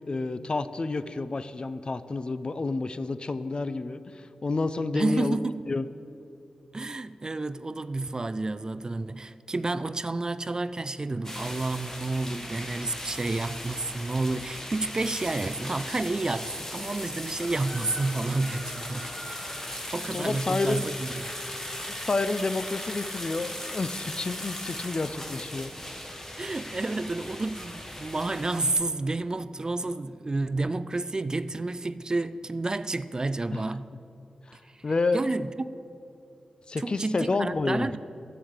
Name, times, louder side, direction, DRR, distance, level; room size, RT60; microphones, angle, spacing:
voice 1, 0.1-5.4 5.7-5.9 20.1-20.9 22.1-25.7 33.5-33.6 34.5-34.6 34.8-35.2 36.7-38.0, left 3 dB, 40° left, 0.4 m, -29 dB
voice 2, 4.9-5.6 6.7-19.6 19.9-21.3 26.4-33.9 34.7-34.8 35.1-35.7 36.8-38.0, right 2 dB, 30° right, 0.3 m, -30 dB
sound 1, 11.2-28.7, left 1 dB, 20° left, 1.1 m, -38 dB
11.0 x 4.8 x 8.0 m
cardioid pair, 65°, 2 cm